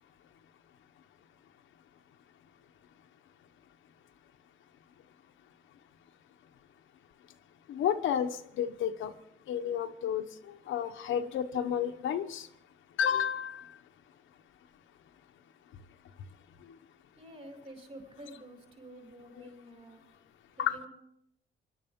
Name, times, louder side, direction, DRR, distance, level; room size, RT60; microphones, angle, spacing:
voice 1, 7.7-9.1 9.5-10.2 10.7-12.5 13.0-13.7 19.4-19.5 20.6-20.8, left 9 dB, 80° left, 6 dB, 1.0 m, -31 dB
voice 2, 17.2-20.0 20.6-20.9, right 1 dB, 35° right, 2 dB, 6.5 m, -49 dB
25.0 x 12.0 x 3.7 m, 0.75 s
cardioid pair, 90°, 20 cm